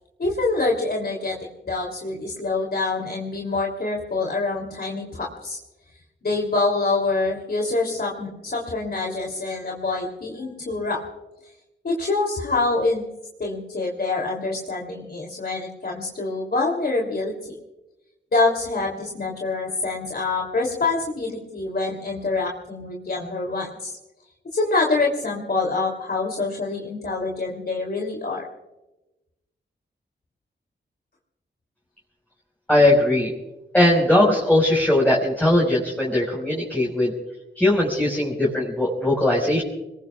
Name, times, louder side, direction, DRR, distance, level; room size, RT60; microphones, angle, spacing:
voice 1, 0.2-1.4 1.6-5.6 6.2-11.0 11.8-13.0 13.4-17.6 18.3-23.9 24.5-28.4, left 3 dB, 55° left, -1 dB, 3.1 m, -25 dB
voice 2, 32.7-33.3 33.7-37.1 37.5-39.6, left 1 dB, 10° left, -4 dB, 5.0 m, -19 dB
26.5 x 21.0 x 2.4 m, 1.0 s
cardioid pair, 65°, 19 cm